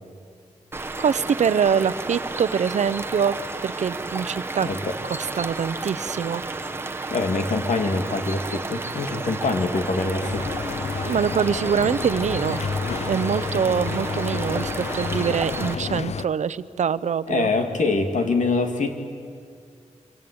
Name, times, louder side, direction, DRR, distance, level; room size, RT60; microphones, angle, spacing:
sound 1, 0.7-15.7, right 3 dB, 20° right, 1.1 m, -32 dB
voice 1, 1.0-3.3 3.6-4.7 5.2-6.4 11.0-12.6 13.1-17.5, right 7 dB, 75° right, 15 dB, 0.7 m, -24 dB
voice 2, 4.6-4.9 7.1-10.6 17.3-18.9, left 3 dB, 90° left, 5 dB, 2.5 m, -24 dB
sound 2, 10.2-16.3, left 6 dB, 65° left, 0.6 m, -30 dB
26.0 x 25.5 x 8.7 m, 2.2 s
wide cardioid pair, 155°, 12 cm